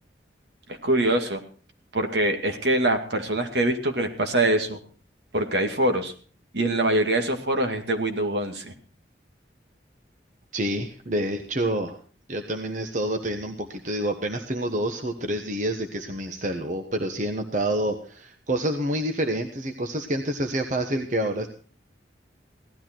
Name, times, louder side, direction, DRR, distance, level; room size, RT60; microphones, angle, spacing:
voice 1, 0.8-1.4 1.9-4.8 5.3-6.1 6.5-8.7, right 1 dB, 70° right, 5 dB, 2.4 m, -24 dB
voice 2, 10.5-12.0 12.3-21.5, right 1 dB, 45° right, 5 dB, 1.2 m, -28 dB
17.5 x 13.0 x 4.5 m, 0.40 s
head